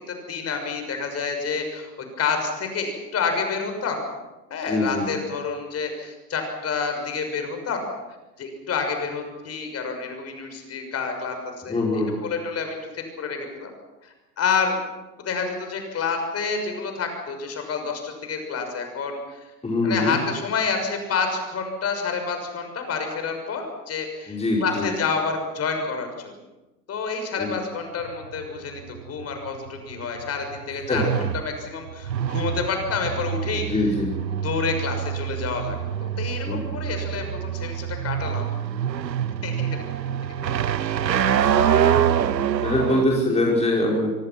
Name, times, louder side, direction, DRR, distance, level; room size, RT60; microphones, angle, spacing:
voice 1, 0.0-4.0 4.5-7.9 8.4-11.4 11.6-13.7 14.0-14.8 15.2-19.5 19.8-26.3 26.9-31.1 31.4-33.7 34.3-38.5 39.4-39.8 41.1-42.1, left 5 dB, 30° left, 5 dB, 6.4 m, -29 dB
voice 2, 4.7-5.1 11.7-12.2 19.6-20.2 24.3-24.9 27.4-27.6 30.9-31.3 33.5-34.2 36.4-36.6 41.2-41.7 42.6-44.1, left 2 dB, 15° left, -2 dB, 5.3 m, -24 dB
sound 1, 28.0-43.0, right 9 dB, 85° right, 0.9 m, -26 dB
25.0 x 24.5 x 6.0 m, 1.0 s
figure-of-eight pair, 90°, 50 cm